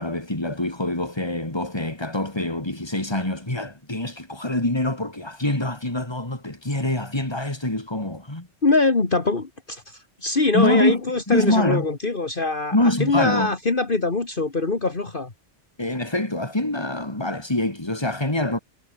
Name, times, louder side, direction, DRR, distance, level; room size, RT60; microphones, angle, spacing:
voice 1, 0.0-8.5 10.5-11.0 11.3-11.9 12.7-13.5 15.8-18.6, left 1 dB, 20° left, 3.5 m, -25 dB
voice 2, 8.6-15.3, left 3 dB, 45° left, 2.4 m, -23 dB
omnidirectional pair, 1.2 m